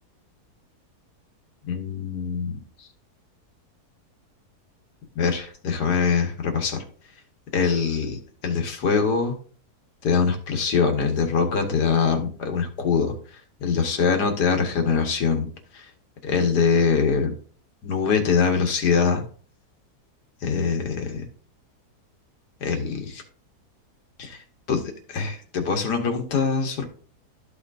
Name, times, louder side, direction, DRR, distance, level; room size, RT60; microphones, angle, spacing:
voice 1, 1.7-2.9 5.2-6.8 7.5-9.3 10.0-13.1 13.6-15.5 15.7-15.9 16.2-17.3 17.8-19.2 20.4-21.2 22.6-23.2 24.2-24.4 24.7-24.8 25.1-26.9, left 5 dB, 80° left, 4 dB, 1.9 m, -23 dB
13.0 x 5.0 x 2.6 m, 0.42 s
omnidirectional pair, 1.7 m